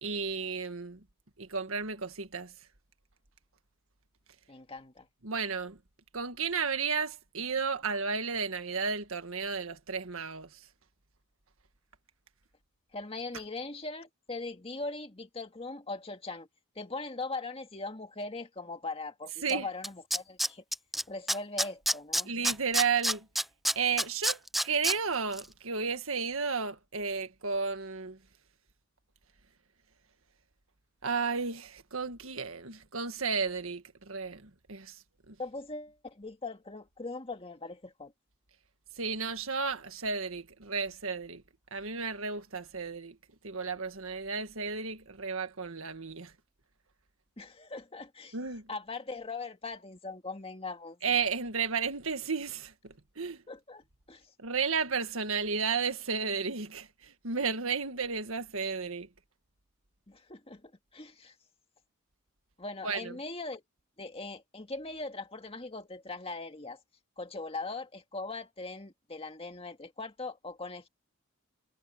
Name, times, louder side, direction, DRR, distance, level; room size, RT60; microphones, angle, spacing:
voice 1, 0.0-1.0 1.4-2.5 5.2-5.8 6.1-10.5 19.4-19.7 22.3-23.3 23.8-28.2 31.0-35.0 35.3-35.4 39.0-41.4 41.7-43.2 43.4-46.3 48.3-48.7 51.0-53.4 54.4-59.1 62.8-63.1, right 5 dB, 70° right, 1.8 m, -33 dB
voice 2, 4.5-5.1 12.9-16.5 16.8-20.6 21.1-22.3 35.4-38.1 47.4-48.4 48.7-51.0 53.5-54.3 60.1-61.3 62.6-63.6 64.0-66.8 67.2-70.9, left 3 dB, 25° left, 2.0 m, -40 dB
Tools, 19.5-19.6 19.8-21.0 21.3-24.9 25.3-25.4, equal, ahead, 0.3 m, -27 dB
head